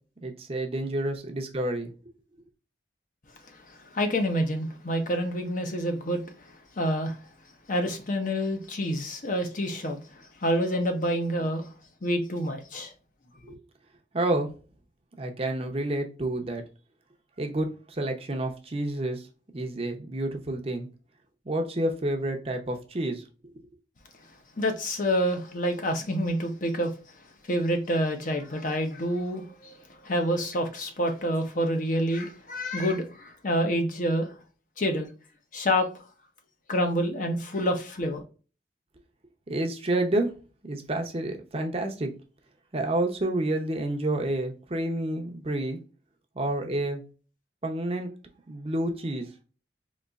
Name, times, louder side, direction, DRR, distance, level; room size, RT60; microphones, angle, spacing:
voice 1, 0.2-1.9 13.5-13.6 14.1-14.5 15.2-16.6 17.4-19.3 19.5-20.9 21.5-23.3 39.5-40.3 40.6-42.1 42.7-45.8 46.4-47.0 47.6-48.1 48.5-49.3, right 1 dB, 35° right, 0.6 m, -29 dB
voice 2, 3.5-6.2 6.8-7.2 7.7-11.7 12.0-12.9 24.6-26.9 27.5-29.8 30.0-34.3 34.8-35.1 35.5-35.9 36.7-38.2, equal, 45° left, 0.7 m, -27 dB
4.0 x 2.9 x 2.3 m
head